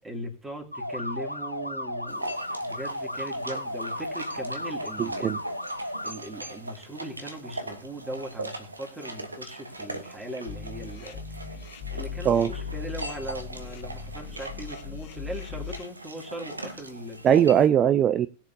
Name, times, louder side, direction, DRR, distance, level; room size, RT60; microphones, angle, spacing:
voice 1, 0.0-2.3 2.6-5.3 6.0-11.6 11.9-17.5, right 1 dB, 10° right, 3 dB, 2.9 m, -39 dB
sound 1, 0.7-6.1, left 1 dB, 90° left, 0.9 m, -34 dB
sound 2, 2.1-17.7, right 2 dB, 80° right, 1.4 m, -40 dB
voice 2, 5.0-5.4 12.2-12.5 17.2-18.3, right 9 dB, 30° right, 14 dB, 0.5 m, -20 dB
sound 3, 10.5-15.8, left 7 dB, 45° left, 1.5 m, -38 dB
20.5 x 7.3 x 2.8 m, 0.33 s
figure-of-eight pair, 90°, 0 cm